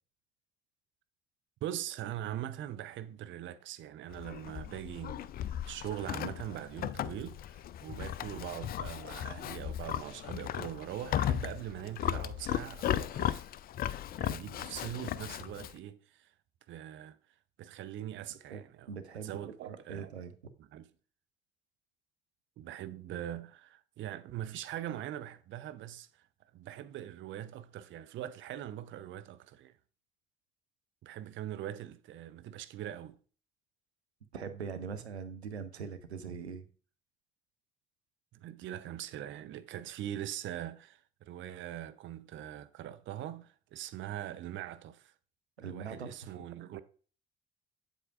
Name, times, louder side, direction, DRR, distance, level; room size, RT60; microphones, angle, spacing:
voice 1, 1.6-13.5 14.2-16.3 16.7-17.2 17.6-18.9 19.2-20.2 20.7-20.9 22.6-26.3 26.5-29.7 31.0-33.2 38.3-45.1 45.6-46.8, right 12 dB, 40° right, 0.6 m, -42 dB
Livestock farm animals working animals, 4.1-15.8, left 11 dB, 30° left, 0.4 m, -36 dB
voice 2, 18.5-19.4 19.7-20.4 34.3-36.7 45.6-46.4, right 6 dB, 85° right, 0.6 m, -42 dB
8.1 x 7.7 x 2.5 m
figure-of-eight pair, 50°, 32 cm